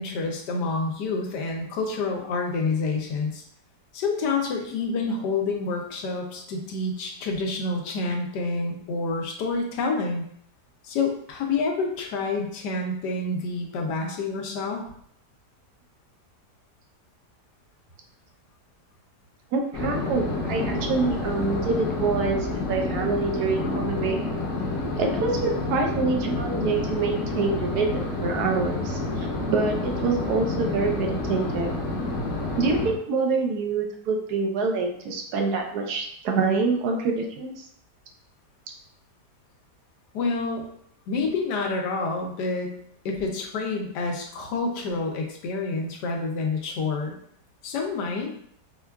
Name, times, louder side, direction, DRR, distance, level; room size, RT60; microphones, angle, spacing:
voice 1, 0.0-3.4 3.9-10.2 10.8-14.8 40.1-40.6 41.1-42.7 43.0-47.2 47.6-48.3, left 3 dB, 80° left, 1 dB, 1.3 m, -28 dB
voice 2, 19.5-24.2 25.0-31.7 32.6-37.6, right 4 dB, 75° right, 2 dB, 1.1 m, -26 dB
sound 1, 19.7-32.9, left 2 dB, 60° left, 1.0 m, -29 dB
4.5 x 2.3 x 2.2 m, 0.65 s
omnidirectional pair, 1.8 m